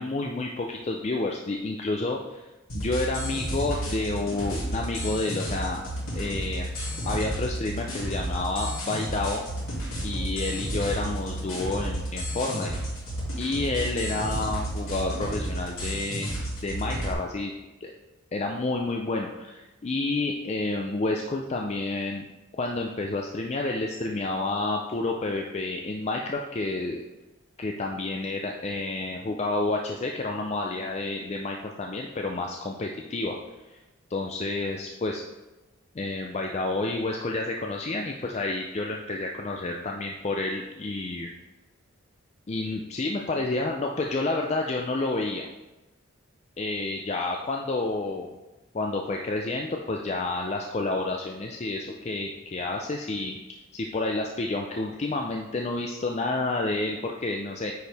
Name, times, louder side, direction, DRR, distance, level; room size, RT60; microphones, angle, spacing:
voice 1, 0.0-2.4 2.7-5.8 6.1-6.7 7.0-9.4 10.0-12.7 13.4-16.3 16.6-17.5 17.8-17.9 18.3-22.2 22.5-27.0 27.6-33.4 34.1-35.2 36.0-41.3 42.5-45.4 46.6-48.3 48.7-53.4 53.7-57.7, left 2 dB, 30° left, 1 dB, 0.4 m, -29 dB
sound 1, 2.7-17.1, right 1 dB, 75° left, 2.6 m, -32 dB
9.3 x 4.5 x 3.4 m, 1.1 s
head